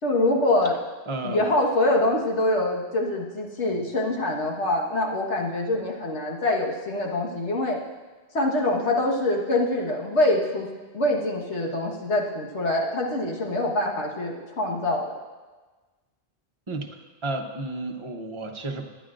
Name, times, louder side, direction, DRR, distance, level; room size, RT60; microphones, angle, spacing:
voice 1, 0.0-0.7 1.2-7.8 8.3-10.7 10.9-15.2, left 1 dB, 75° left, -1 dB, 1.8 m, -24 dB
voice 2, 1.1-1.5 16.7-18.9, right 2 dB, 30° right, 2 dB, 0.9 m, -32 dB
22.5 x 9.9 x 2.5 m, 1.3 s
omnidirectional pair, 1.2 m